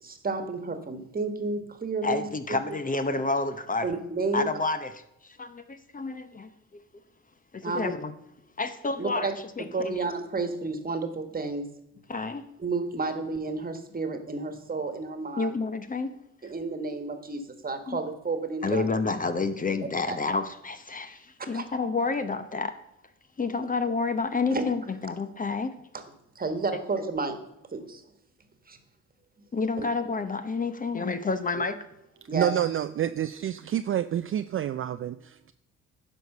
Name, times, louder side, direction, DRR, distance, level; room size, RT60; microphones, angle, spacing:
voice 1, 0.0-2.6 3.8-4.5 7.6-7.8 9.0-9.3 9.6-11.7 12.6-15.5 16.4-18.9 20.1-20.2 21.4-21.6 24.5-24.7 26.3-27.4 27.7-28.0 28.7-28.8 29.8-29.9 32.3-32.5, right 3 dB, 30° right, 8 dB, 1.5 m, -31 dB
voice 2, 2.0-3.9 4.3-6.8 7.5-8.1 8.6-10.0 12.1-12.5 15.4-16.1 17.9-18.0 18.6-22.7 23.4-25.7 29.5-31.8, left 3 dB, 25° left, 10 dB, 0.8 m, -29 dB
voice 3, 32.3-35.5, right 11 dB, 45° right, 10 dB, 0.4 m, -28 dB
11.0 x 4.9 x 6.6 m, 0.80 s
cardioid pair, 90°, 30 cm